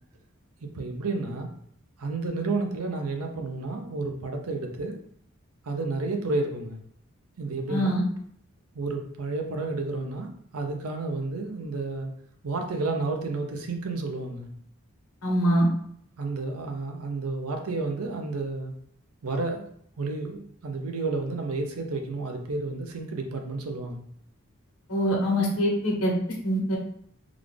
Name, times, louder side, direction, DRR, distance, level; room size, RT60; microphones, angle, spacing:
voice 1, 0.6-1.5 2.0-4.9 5.6-6.8 7.4-8.0 8.7-12.1 12.4-14.5 16.2-18.7 19.2-19.6 20.0-24.0 25.2-25.4, right 3 dB, 90° right, 4 dB, 0.7 m, -31 dB
voice 2, 7.7-8.0 15.2-15.7 24.9-26.1 26.4-26.8, equal, 85° left, -1 dB, 1.1 m, -24 dB
3.9 x 2.4 x 3.2 m, 0.66 s
head